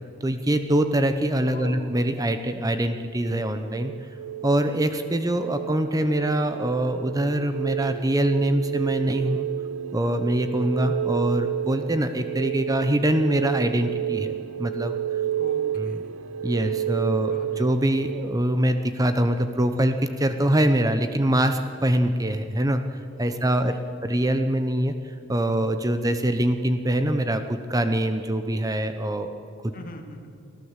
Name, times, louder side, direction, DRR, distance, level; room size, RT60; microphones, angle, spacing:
voice 1, 0.2-3.9 4.4-9.5 9.9-15.0 15.8-16.0 16.4-22.8 23.2-23.8 24.0-29.3 29.6-29.7, right 1 dB, 15° right, 8 dB, 0.8 m, -24 dB
voice 2, 1.4-1.9 15.3-16.1 17.3-17.7 23.3-23.9 29.7-30.3, equal, 45° left, 4 dB, 2.4 m, -41 dB
sound 1, 3.2-18.3, right 11 dB, 70° right, 0.5 m, -31 dB
25.0 x 15.5 x 8.2 m, 2.6 s
head